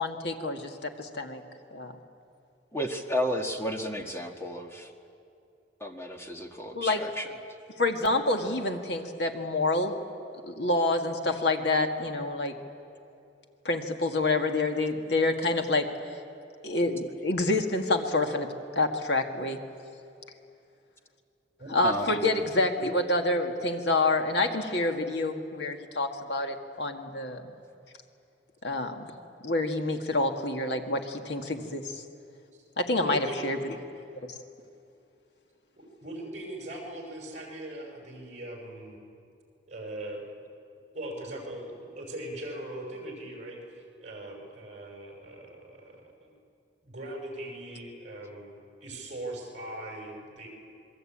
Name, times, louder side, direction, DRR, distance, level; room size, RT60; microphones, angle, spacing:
voice 1, 0.0-1.4 1.7-1.9 6.7-7.1 7.8-9.9 10.4-12.5 13.6-15.9 16.6-18.5 18.8-19.6 21.7-27.5 28.6-29.1 29.4-31.8 32.8-33.6 34.3-34.4, left 2 dB, 65° left, 4 dB, 2.0 m, -27 dB
voice 2, 2.7-4.9 5.8-7.2 21.8-22.1, equal, 15° left, 3 dB, 1.6 m, -32 dB
voice 3, 33.0-33.4 35.8-39.0 39.7-40.2 40.9-46.3 46.8-50.5, right 1 dB, 40° right, 1 dB, 5.5 m, -40 dB
27.0 x 22.0 x 8.8 m, 2.6 s
head